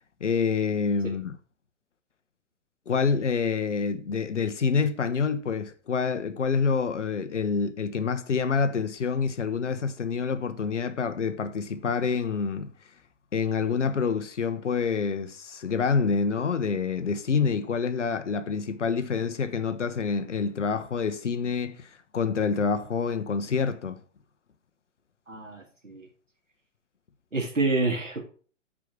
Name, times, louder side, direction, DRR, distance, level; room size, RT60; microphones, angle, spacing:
voice 1, 0.2-1.4 2.9-12.7 13.3-24.0, left 5 dB, 70° left, 1.1 m, -27 dB
voice 2, 25.3-26.1 27.3-28.2, right 3 dB, 85° right, 2.1 m, -28 dB
9.4 x 5.1 x 6.0 m
figure-of-eight pair, 110°, 37 cm